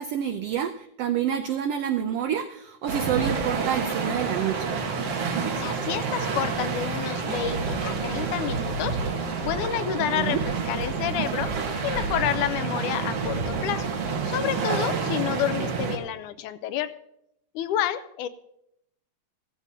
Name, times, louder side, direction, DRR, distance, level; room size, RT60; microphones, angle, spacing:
voice 1, 0.0-4.8 10.1-10.4, right 9 dB, 85° right, 7 dB, 1.3 m, -28 dB
sound 1, 2.9-16.0, right 5 dB, 55° right, 2.4 m, -28 dB
voice 2, 5.5-9.1 9.4-13.9 14.3-17.0 17.6-18.3, left 11 dB, 90° left, 11 dB, 2.2 m, -29 dB
16.0 x 14.5 x 2.8 m, 0.79 s
omnidirectional pair, 3.5 m